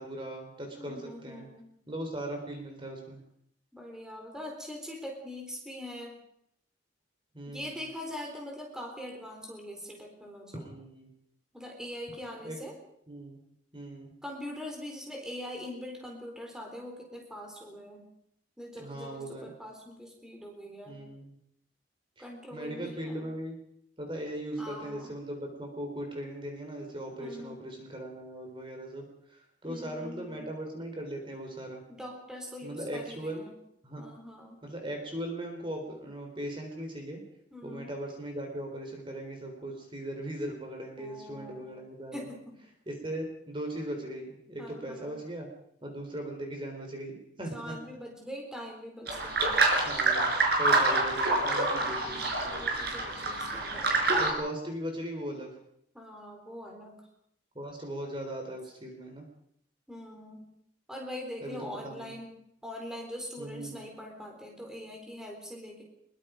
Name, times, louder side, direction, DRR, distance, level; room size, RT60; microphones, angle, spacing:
voice 1, 0.0-1.5 1.9-3.2 7.3-7.8 10.5-11.1 12.4-12.6 13.1-13.4 13.7-14.1 18.8-19.5 20.9-21.4 22.2-22.3 22.5-23.6 24.0-31.8 32.6-33.5 33.8-34.0 34.6-37.2 37.6-42.3 42.9-45.5 45.8-47.8 49.8-50.3 50.6-52.2 54.2-55.6 57.5-59.3 61.4-61.6 61.8-62.1 63.4-63.8, right 1 dB, 25° right, 3 dB, 4.0 m, -38 dB
voice 2, 0.8-1.7 3.7-6.2 7.5-10.7 11.5-12.8 14.2-18.1 18.6-21.0 22.2-23.3 24.6-25.1 27.2-27.6 29.6-30.5 31.9-33.6 34.0-34.6 37.5-37.9 41.0-41.7 42.1-42.6 44.6-45.2 47.5-49.6 51.8-54.1 55.9-57.0 59.9-60.5 60.9-62.4 62.6-65.8, left 1 dB, 5° right, 0 dB, 4.2 m, -43 dB
sound 1, 49.1-54.3, right 2 dB, 55° right, 5.3 m, -27 dB
24.0 x 22.5 x 5.2 m, 0.71 s
head